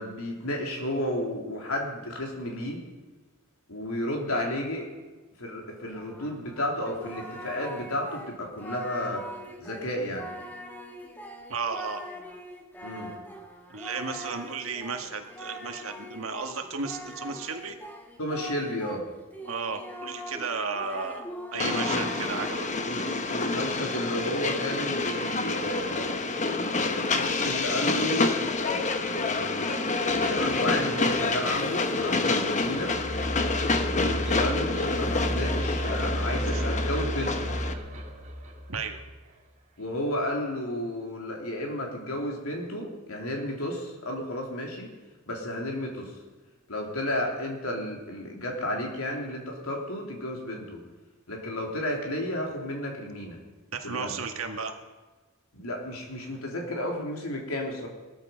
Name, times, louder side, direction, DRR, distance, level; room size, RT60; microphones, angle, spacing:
voice 1, 0.0-2.8 3.7-4.9 5.4-9.3 9.6-10.3 12.8-13.1 18.2-19.0 21.5-22.1 22.8-23.0 23.3-26.2 26.7-29.8 30.3-32.9 34.2-37.5 39.8-44.9 45.3-46.1 46.7-50.8 51.3-53.4 53.8-54.1 55.5-57.9, left 1 dB, 80° left, 0 dB, 3.4 m, -32 dB
Singing, 5.9-19.0 19.3-22.5, equal, 10° left, 1.5 m, -42 dB
voice 2, 11.5-12.0 13.7-17.8 19.4-21.2 21.5-22.7 22.9-23.4 34.0-34.3 36.5-36.6 38.7-39.0 53.7-54.7, right 4 dB, 70° right, 5 dB, 1.7 m, -34 dB
Train, 21.6-37.7, left 3 dB, 35° left, 1.0 m, -28 dB
sound 1, 30.1-39.3, equal, 35° right, 2.7 m, -34 dB
18.5 x 13.5 x 5.2 m, 1.3 s
head